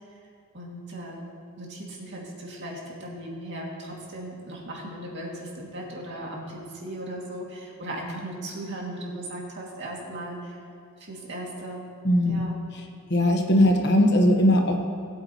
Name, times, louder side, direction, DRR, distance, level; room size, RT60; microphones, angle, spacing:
voice 1, 0.5-1.3 1.6-10.6 11.0-11.9 12.2-12.6, right 1 dB, 55° right, -2 dB, 2.3 m, -37 dB
voice 2, 12.0-12.4 12.7-12.8 13.1-14.7, left 1 dB, 50° left, 3 dB, 1.2 m, -19 dB
19.5 x 8.7 x 3.0 m, 2.4 s
head